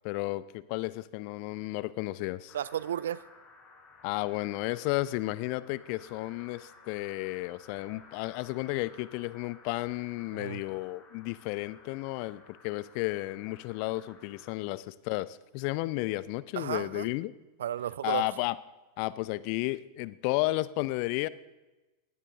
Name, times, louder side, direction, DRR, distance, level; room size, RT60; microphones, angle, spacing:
voice 1, 0.0-2.5 4.0-17.3 18.0-18.6 19.0-21.3, left 19 dB, 45° left, 18 dB, 0.6 m, -33 dB
sound 1, 2.5-14.5, left 4 dB, 25° left, 4.6 m, -56 dB
voice 2, 2.5-3.2 10.3-10.6 16.6-17.1 17.6-18.2, right 10 dB, 60° right, 19 dB, 0.5 m, -33 dB
20.0 x 17.0 x 3.6 m, 1.1 s
figure-of-eight pair, 90°, 0 cm